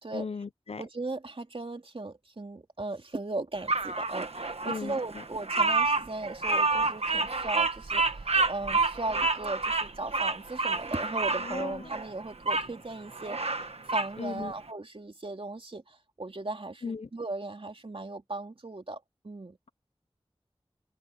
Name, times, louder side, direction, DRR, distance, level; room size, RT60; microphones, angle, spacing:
voice 1, 0.1-0.8 4.6-5.2 11.4-11.9 14.2-14.5 16.8-17.1, left 5 dB, 80° left, 0.6 m, -37 dB
voice 2, 0.8-19.6, right 2 dB, 65° right, 3.0 m, -37 dB
Bird vocalization bird call bird song, 3.7-12.7 13.1-14.1, right 3 dB, 85° right, 1.4 m, -29 dB
wide cardioid pair, 55°, 10 cm